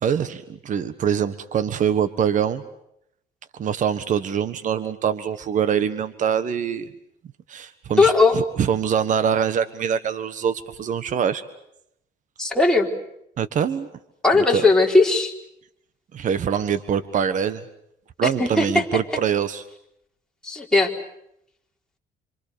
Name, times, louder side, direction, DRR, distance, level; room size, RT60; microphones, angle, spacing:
voice 1, 0.0-2.6 3.6-6.9 7.5-11.4 13.4-13.9 14.3-14.7 16.1-17.6 18.2-19.6, right 8 dB, 50° right, 12 dB, 1.5 m, -24 dB
voice 2, 8.0-8.4 12.4-12.9 14.2-15.3 18.2-18.8 20.4-20.9, left 3 dB, 5° left, -1 dB, 4.4 m, -18 dB
27.0 x 26.5 x 6.9 m, 0.76 s
cardioid pair, 110°, 17 cm